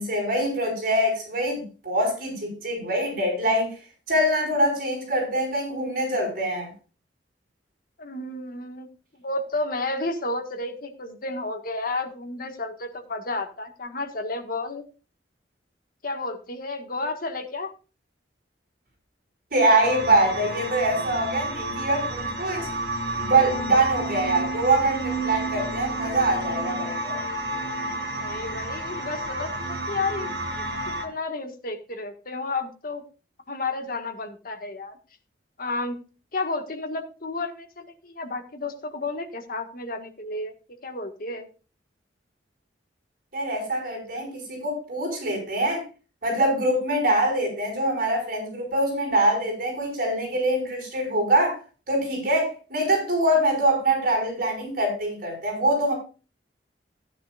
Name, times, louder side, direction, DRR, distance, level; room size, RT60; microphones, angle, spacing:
voice 1, 0.0-3.7 4.1-6.7 19.5-22.7 23.1-27.2 43.3-45.8 46.2-51.6 51.9-55.9, right 1 dB, 55° right, 1 dB, 5.8 m, -24 dB
voice 2, 8.0-8.9 9.1-14.8 16.0-17.7 28.2-30.7 31.0-33.0 33.5-35.0 35.6-36.0 36.3-40.5 40.8-41.5, left 2 dB, 50° left, 4 dB, 1.8 m, -32 dB
sound 1, 19.8-31.1, right 1 dB, 70° right, 2.0 m, -31 dB
15.0 x 10.0 x 2.5 m, 0.34 s
head